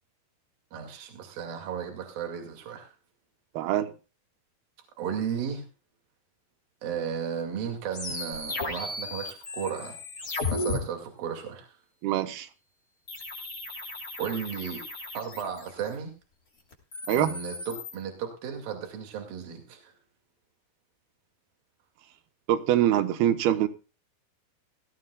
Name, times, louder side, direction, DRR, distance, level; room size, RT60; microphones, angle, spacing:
voice 1, 0.7-2.9 5.0-5.6 6.8-10.0 10.5-11.7 14.2-14.8 15.1-16.1 17.1-19.9, right 7 dB, 70° right, 4.0 m, -34 dB
voice 2, 3.6-3.9 12.0-12.5 17.1-17.3 22.5-23.7, right 12 dB, 85° right, 3.0 m, -24 dB
sound 1, 7.9-10.8 13.1-15.9 16.7-17.9, left 3 dB, 25° left, 3.1 m, -35 dB
18.0 x 16.5 x 2.3 m
omnidirectional pair, 4.4 m